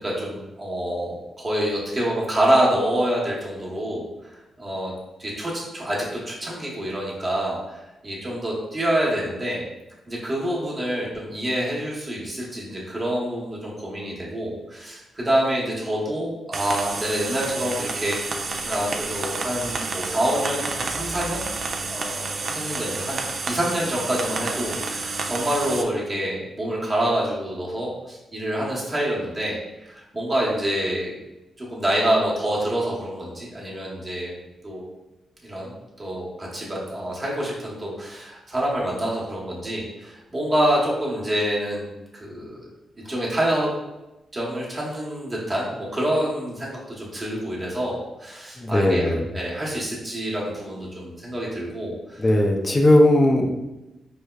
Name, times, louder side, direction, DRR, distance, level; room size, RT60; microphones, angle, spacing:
voice 1, 0.0-4.3 4.6-4.9 5.2-9.6 10.1-18.4 18.6-21.4 21.9-23.2 23.5-31.1 31.6-34.3 34.6-34.9 35.4-35.7 36.0-42.6 43.0-43.7 44.3-52.2, right 1 dB, 30° right, -5 dB, 1.0 m, -27 dB
sound 1, 16.5-25.8, right 3 dB, 55° right, 0.4 m, -30 dB
voice 2, 48.6-49.3 52.2-53.5, left 1 dB, 25° left, 2 dB, 0.4 m, -18 dB
4.7 x 2.1 x 2.3 m, 0.99 s
cardioid pair, 75°, 0 cm